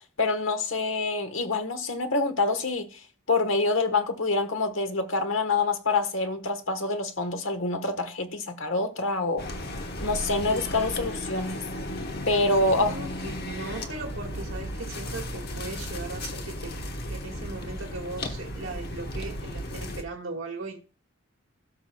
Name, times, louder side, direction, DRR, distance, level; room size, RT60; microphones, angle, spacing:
voice 1, 0.2-3.0 3.3-9.4 10.0-11.6 12.3-13.0, left 3 dB, 80° left, 1.2 m, -26 dB
sound 1, 9.4-20.0, left 1 dB, 50° left, 1.1 m, -35 dB
voice 2, 12.3-16.7 17.1-20.8, right 3 dB, 85° right, 1.7 m, -38 dB
17.5 x 6.0 x 2.3 m
head